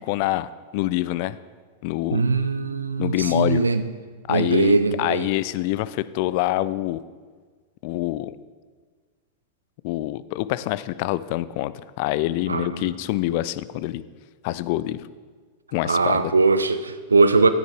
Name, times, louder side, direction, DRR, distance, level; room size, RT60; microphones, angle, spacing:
voice 1, 0.0-1.4 1.8-2.2 3.0-3.6 4.3-7.0 7.8-8.4 9.8-11.7 12.0-14.0 14.4-15.0 15.7-16.3, left 16 dB, 50° left, 16 dB, 0.3 m, -25 dB
voice 2, 2.1-3.8 4.3-5.3 12.5-12.9 15.8-17.5, right 3 dB, 80° right, 12 dB, 0.5 m, -20 dB
7.9 x 7.2 x 4.7 m, 1.5 s
figure-of-eight pair, 90°, 0 cm